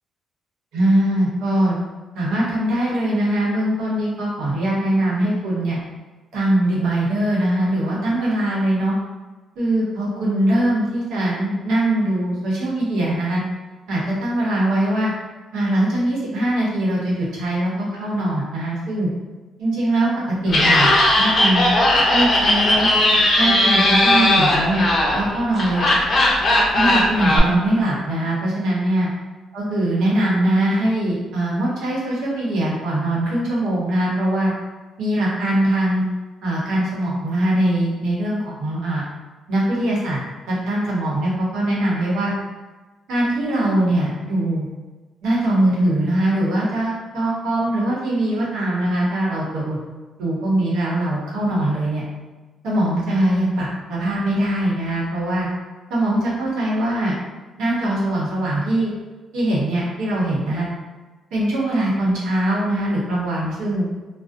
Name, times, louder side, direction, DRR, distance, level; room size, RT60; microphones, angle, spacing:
voice 1, 0.7-1.8 2.1-5.8 6.3-8.9 9.6-13.4 13.9-15.1 15.5-19.1 19.6-21.6 22.1-24.9 25.1-25.8 26.7-29.1 29.5-34.5 35.0-36.0 36.4-39.1 39.5-40.2 40.5-42.3 43.1-44.7 45.2-49.8 50.2-52.0 52.6-55.5 55.9-57.2 57.6-58.9 59.3-60.7 61.3-63.9, right 1 dB, 85° right, -6 dB, 0.8 m, -21 dB
Laughter, 20.5-27.4, left 1 dB, 45° left, 0.5 m, -17 dB
2.5 x 2.0 x 2.5 m, 1.2 s
cardioid pair, 90°, 0 cm